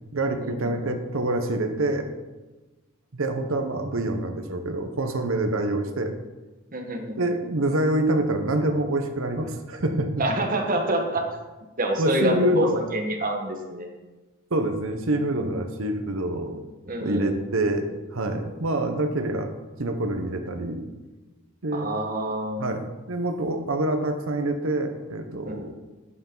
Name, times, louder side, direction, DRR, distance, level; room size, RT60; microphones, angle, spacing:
voice 1, 0.1-2.1 3.1-6.1 7.2-10.2 12.0-12.9 14.5-16.6 17.0-19.5 19.8-20.9 21.6-22.0 22.6-25.7, right 1 dB, 70° right, 5 dB, 0.9 m, -26 dB
voice 2, 6.7-7.3 10.2-11.2 11.8-13.9 15.4-15.6 16.9-17.4 21.7-22.7 25.5-25.6, right 1 dB, 40° right, 2 dB, 1.5 m, -27 dB
9.8 x 9.5 x 3.9 m, 1.2 s
head